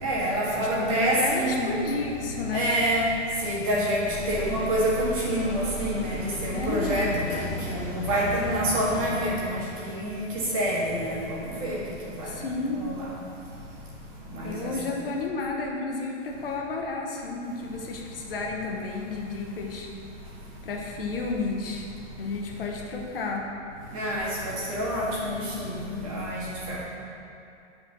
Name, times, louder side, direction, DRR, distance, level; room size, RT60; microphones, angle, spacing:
voice 1, 0.0-1.7 2.5-3.0 3.4-7.1 7.3-9.6 10.0-10.2 10.5-11.8 12.2-12.3 12.8-13.0 14.3-14.7 23.9-26.8, right 1 dB, 30° right, -6 dB, 1.7 m, -27 dB
voice 2, 0.6-2.7 6.5-7.1 12.2-12.9 14.4-19.9 20.6-21.9 22.2-23.5, left 3 dB, 50° left, 0 dB, 1.1 m, -32 dB
sound 1, 4.0-9.3, equal, 25° left, 1.0 m, -34 dB
9.4 x 4.9 x 6.0 m, 2.6 s
hypercardioid pair, 180°, 37 cm